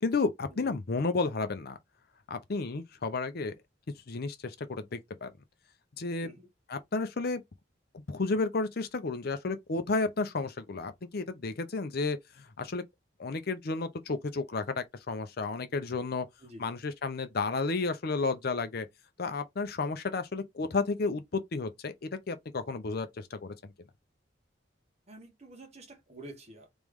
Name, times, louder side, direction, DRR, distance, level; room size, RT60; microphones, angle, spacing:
voice 1, 0.0-1.8 2.3-3.5 4.1-5.3 6.0-6.3 6.7-7.4 7.9-12.8 13.2-16.3 16.6-18.9 19.2-23.7, left 3 dB, 55° left, 0.6 m, -32 dB
voice 2, 25.1-26.7, right 1 dB, 35° right, 1.3 m, -49 dB
3.4 x 3.1 x 3.5 m
head